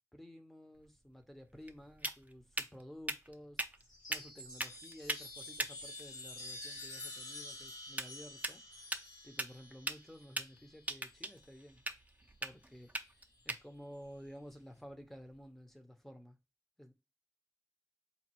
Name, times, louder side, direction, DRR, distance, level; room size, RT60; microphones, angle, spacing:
voice 1, 0.0-3.7 4.1-11.8 12.4-16.4 16.8-16.9, equal, 5° left, 0.9 m, -53 dB
sound 1, 0.7-15.5, right 1 dB, 20° right, 0.5 m, -44 dB
Chime, 3.8-11.6 12.8-13.5, left 2 dB, 80° left, 1.8 m, -49 dB
4.1 x 2.4 x 4.5 m
wide cardioid pair, 65°, 7 cm